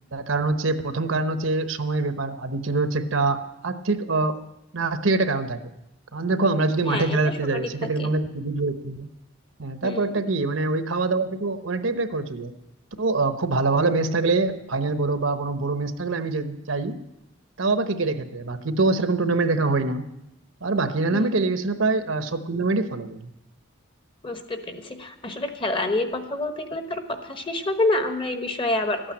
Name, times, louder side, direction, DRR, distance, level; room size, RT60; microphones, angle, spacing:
voice 1, 0.1-4.4 4.7-5.6 6.1-9.1 9.6-12.5 13.0-17.0 17.6-20.1 20.6-23.3, right 3 dB, 70° right, 9 dB, 1.0 m, -24 dB
voice 2, 6.8-7.2 7.5-7.7 8.0-8.1 9.8-10.2 21.1-21.3 24.2-29.0, left 2 dB, 25° left, 7 dB, 1.2 m, -27 dB
13.5 x 8.9 x 8.7 m, 0.88 s
head